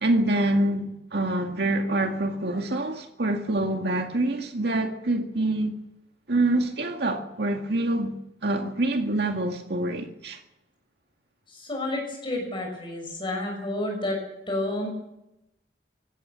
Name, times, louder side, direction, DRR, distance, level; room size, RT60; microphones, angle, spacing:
voice 1, 0.0-5.7 6.3-8.1 8.4-10.4, right 2 dB, 70° right, 2.1 m, -26 dB
voice 2, 11.5-14.2 14.5-14.9, left 1 dB, 30° left, 6.2 m, -30 dB
24.5 x 16.5 x 7.1 m
head